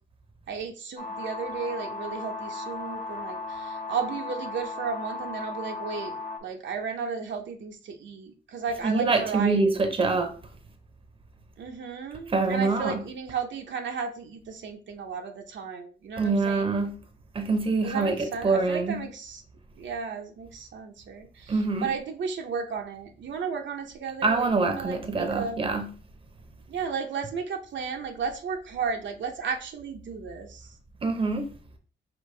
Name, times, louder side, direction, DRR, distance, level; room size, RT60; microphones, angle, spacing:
voice 1, 0.5-6.2 6.4-9.8 11.6-16.7 17.8-19.4 19.8-25.6 26.7-30.7, right 5 dB, 70° right, 0.7 m, -34 dB
sound 1, 1.0-6.4, left 3 dB, 45° left, 0.9 m, -36 dB
voice 2, 8.8-10.3 12.3-13.0 16.2-17.0 17.3-19.0 21.5-21.9 24.2-25.9 31.0-31.5, right 3 dB, 25° right, 0.7 m, -25 dB
5.1 x 2.9 x 3.2 m
wide cardioid pair, 145°, 20 cm